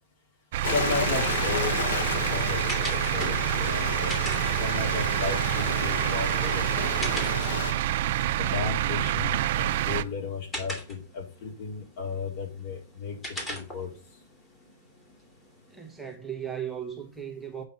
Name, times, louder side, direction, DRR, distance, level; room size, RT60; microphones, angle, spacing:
sound 1, 0.5-10.0, right 13 dB, 60° right, 0.6 m, -27 dB
Stream, 0.6-7.7, left 5 dB, 80° left, 1.4 m, -32 dB
voice 1, 0.7-4.2 4.6-7.2 8.4-13.2 13.5-13.9, left 4 dB, 50° left, 4.1 m, -34 dB
sound 2, 1.5-16.2, equal, 15° left, 2.4 m, -43 dB
voice 2, 15.7-17.6, right 8 dB, 5° right, 1.2 m, -36 dB
8.7 x 5.4 x 5.6 m
supercardioid pair, 150°, 0 cm